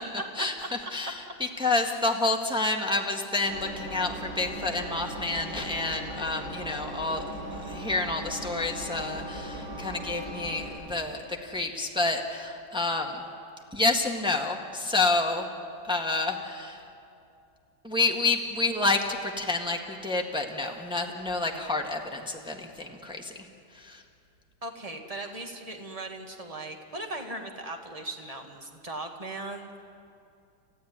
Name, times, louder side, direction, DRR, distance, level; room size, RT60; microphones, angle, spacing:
voice 1, 0.4-1.2 1.6-7.2 7.5-13.2 13.7-15.5 15.8-16.8 17.8-23.3 23.7-24.0, left 2 dB, 5° right, 1 dB, 1.6 m, -29 dB
Engine, 3.4-10.7, right 1 dB, 75° right, 8.8 m, -38 dB
voice 2, 24.6-29.7, right 2 dB, 20° right, 3 dB, 1.9 m, -38 dB
29.5 x 14.5 x 9.7 m, 2.5 s
omnidirectional pair, 2.0 m